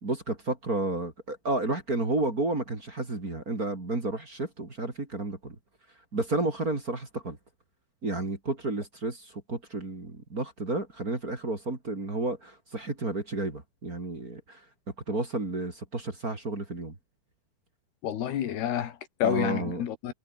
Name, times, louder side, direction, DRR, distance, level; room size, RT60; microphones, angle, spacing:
voice 1, 0.0-5.6 6.1-7.4 8.0-14.6 15.1-17.0 19.2-19.8, right 2 dB, 25° right, 3.5 m, -31 dB
voice 2, 18.0-20.1, left 10 dB, 90° left, 4.2 m, -29 dB
omnidirectional pair, 4.5 m